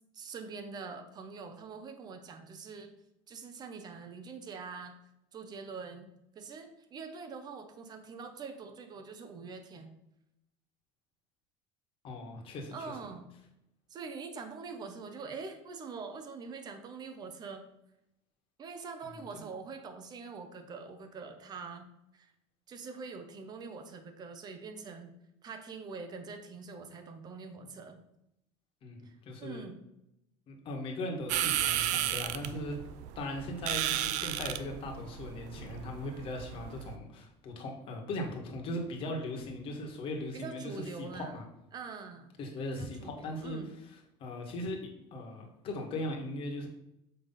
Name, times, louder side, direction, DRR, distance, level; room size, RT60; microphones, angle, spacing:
voice 1, 0.1-2.9 3.3-4.9 5.3-6.1 6.3-9.9 12.7-13.3 13.9-17.6 18.6-21.9 22.1-22.3 22.7-25.1 25.4-28.0 29.0-29.9 40.3-41.3 41.7-42.3 42.8-43.7, right 4 dB, 30° right, 7 dB, 0.9 m, -44 dB
voice 2, 12.0-12.7 19.0-19.2 28.8-29.7 30.5-32.8 33.1-41.4 42.4-43.6 43.8-43.9 44.2-44.8 45.1-46.7, left 1 dB, 45° left, 1 dB, 1.6 m, -39 dB
sound 1, 31.3-36.9, right 12 dB, 65° right, 0.5 m, -34 dB
7.0 x 3.3 x 5.7 m, 0.84 s
cardioid pair, 150°, 13 cm